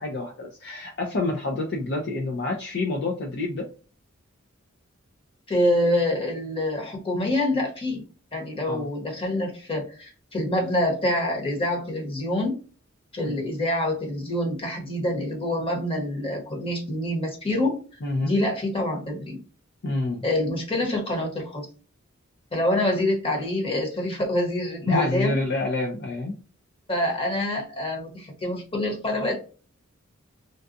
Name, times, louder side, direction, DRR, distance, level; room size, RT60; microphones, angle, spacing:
voice 1, 0.0-3.7 8.6-8.9 13.2-13.4 18.0-18.3 19.8-20.2 24.9-26.3, left 2 dB, 55° left, 0 dB, 0.6 m, -28 dB
voice 2, 5.5-8.0 8.3-12.6 13.1-17.8 18.2-19.4 20.2-21.7 22.5-25.4 26.9-29.4, left 1 dB, 25° left, -1 dB, 1.2 m, -26 dB
3.9 x 2.4 x 2.6 m, 0.37 s
head